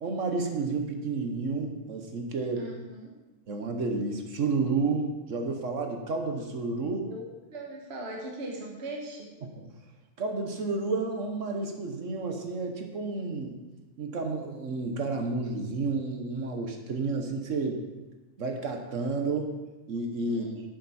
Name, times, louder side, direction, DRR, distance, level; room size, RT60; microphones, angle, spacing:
voice 1, 0.0-2.7 3.5-7.0 9.6-9.7 10.2-13.6 14.0-17.8 18.4-19.5 19.9-20.5, right 3 dB, 70° right, 4 dB, 1.4 m, -31 dB
voice 2, 2.6-3.2 6.7-7.3 7.5-9.3 20.2-20.6, right 1 dB, 55° right, 0 dB, 1.4 m, -40 dB
11.5 x 7.9 x 4.2 m, 1.1 s
omnidirectional pair, 1.4 m